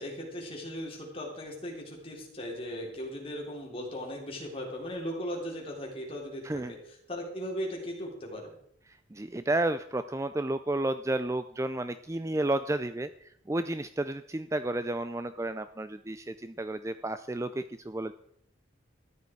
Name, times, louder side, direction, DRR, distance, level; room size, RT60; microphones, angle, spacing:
voice 1, 0.0-8.5, equal, 30° left, -1 dB, 3.8 m, -38 dB
voice 2, 9.1-18.1, right 2 dB, 15° right, 11 dB, 0.4 m, -32 dB
14.0 x 11.0 x 4.7 m, 0.70 s
head